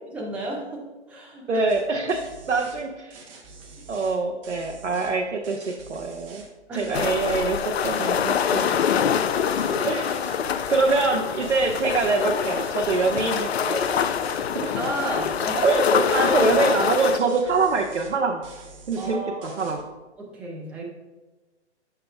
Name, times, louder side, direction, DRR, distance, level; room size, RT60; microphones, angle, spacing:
voice 1, 0.1-1.6 6.7-7.1 9.7-9.8 14.7-16.4 19.0-19.6 20.2-20.8, right 1 dB, 5° right, -3 dB, 0.4 m, -32 dB
voice 2, 1.5-3.3 3.9-6.4 6.8-8.9 9.8-10.1 10.7-13.9 14.5-14.7 15.6-18.4 18.9-19.8, right 3 dB, 80° right, 2 dB, 0.7 m, -24 dB
sound 1, 1.7-1.8 2.1-2.8 3.1-5.1 5.4-6.5 6.8-7.5 7.8-8.8 9.1-11.1 11.4-12.1 12.4-13.5 13.8-14.5 14.8-15.8 16.1-16.8 17.1-18.2 18.4-19.2 19.4-19.8, right 4 dB, 25° right, 1.0 m, -46 dB
sound 2, 6.9-17.2, left 8 dB, 65° left, 0.5 m, -25 dB
8.5 x 6.7 x 2.3 m, 1.2 s
figure-of-eight pair, 130°, 34 cm